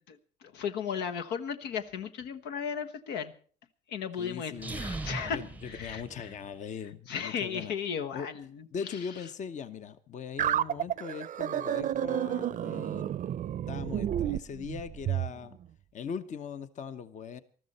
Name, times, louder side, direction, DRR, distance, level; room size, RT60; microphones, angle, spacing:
voice 1, 0.0-3.3 3.9-5.4 5.7-6.0 7.1-8.4, left 7 dB, 85° left, 7 dB, 1.2 m, -35 dB
voice 2, 4.2-7.7 8.1-8.3 8.7-13.2 13.7-15.6 15.9-17.4, left 7 dB, 45° left, 12 dB, 1.0 m, -40 dB
sound 1, 4.5-6.7, right 2 dB, 10° right, 0.7 m, -39 dB
sound 2, 10.4-15.3, right 11 dB, 50° right, 0.6 m, -31 dB
20.0 x 13.5 x 4.2 m, 0.42 s
cardioid pair, 110°, 17 cm